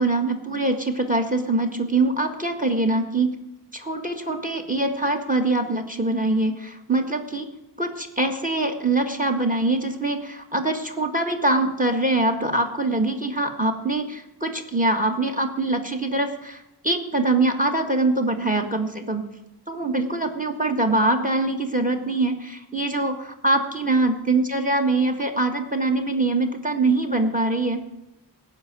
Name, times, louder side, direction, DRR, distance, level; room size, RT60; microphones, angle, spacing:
voice 1, 0.0-3.3 3.7-7.5 7.8-19.2 19.7-27.8, right 2 dB, 20° right, 6 dB, 1.7 m, -23 dB
16.0 x 5.8 x 9.5 m, 0.90 s
wide cardioid pair, 45°, 42 cm